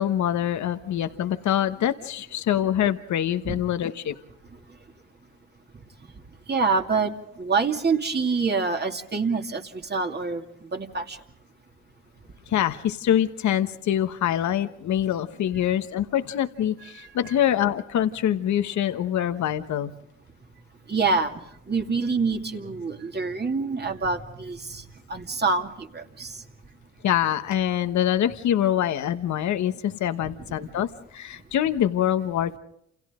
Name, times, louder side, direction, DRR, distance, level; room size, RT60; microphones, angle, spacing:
voice 1, 0.0-4.1 12.5-19.9 27.0-32.6, left 10 dB, 70° left, 9 dB, 1.2 m, -25 dB
voice 2, 6.5-7.1 7.4-10.4 10.7-11.2 20.9-21.3 21.7-24.8 25.1-26.3, right 4 dB, 35° right, 4 dB, 2.5 m, -26 dB
29.0 x 28.5 x 3.8 m, 0.76 s
cardioid pair, 90°, 30 cm